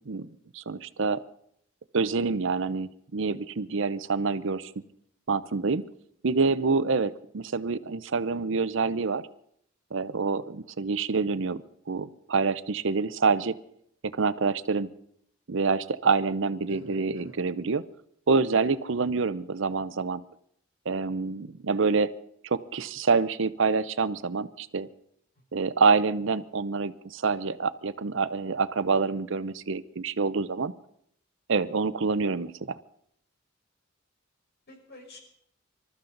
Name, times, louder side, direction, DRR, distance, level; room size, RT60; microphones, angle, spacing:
voice 1, 0.5-1.2 1.9-4.7 5.3-5.8 6.2-9.3 9.9-11.6 11.9-13.6 14.0-14.9 15.5-17.8 18.3-20.2 20.9-22.1 22.4-24.9 25.5-30.7 31.5-32.8, right 4 dB, 65° right, 15 dB, 0.7 m, -26 dB
voice 2, 16.7-17.4 25.5-25.6 31.6-31.7 34.7-35.2, left 1 dB, 55° left, 1 dB, 5.1 m, -48 dB
26.0 x 13.5 x 4.0 m, 0.70 s
head